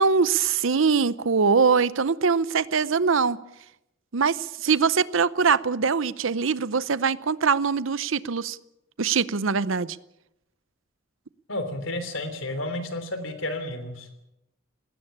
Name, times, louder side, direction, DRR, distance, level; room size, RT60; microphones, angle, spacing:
voice 1, 0.0-3.4 4.1-8.6 9.0-10.0, right 5 dB, 75° right, 18 dB, 0.7 m, -22 dB
voice 2, 11.5-14.1, left 1 dB, 70° left, 9 dB, 3.4 m, -31 dB
19.5 x 16.5 x 8.5 m, 0.87 s
head